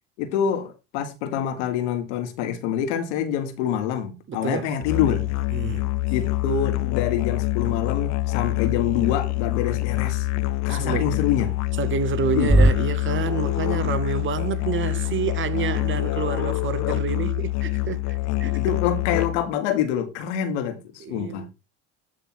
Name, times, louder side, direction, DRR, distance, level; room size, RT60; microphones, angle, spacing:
voice 1, 0.2-5.3 6.1-10.3 10.7-11.5 12.3-12.6 18.4-21.5, left 9 dB, 85° left, 1.7 m, -26 dB
voice 2, 4.3-4.7 5.5-5.9 10.7-11.1 11.8-18.6 21.1-21.5, right 7 dB, 35° right, 0.9 m, -28 dB
Musical instrument, 4.8-19.6, left 16 dB, 55° left, 0.6 m, -26 dB
sound 1, 8.7-12.7, right 1 dB, ahead, 0.4 m, -28 dB
9.1 x 3.4 x 6.0 m
supercardioid pair, 80°, 34 cm